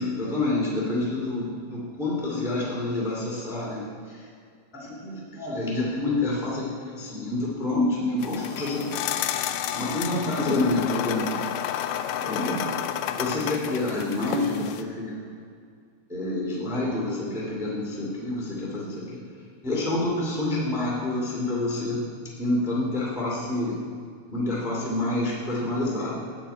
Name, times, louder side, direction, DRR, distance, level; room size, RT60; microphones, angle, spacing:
voice 1, 0.0-3.8 4.1-4.2 4.7-9.1 9.7-11.4 12.2-12.7 13.1-15.2 16.1-19.2 19.6-22.0 22.4-23.8 24.3-26.2, left 2 dB, 5° right, -6 dB, 0.4 m, -28 dB
sound 1, 8.2-14.8, left 10 dB, 80° left, 2.7 m, -31 dB
13.0 x 5.0 x 8.9 m, 2.2 s
omnidirectional pair, 5.3 m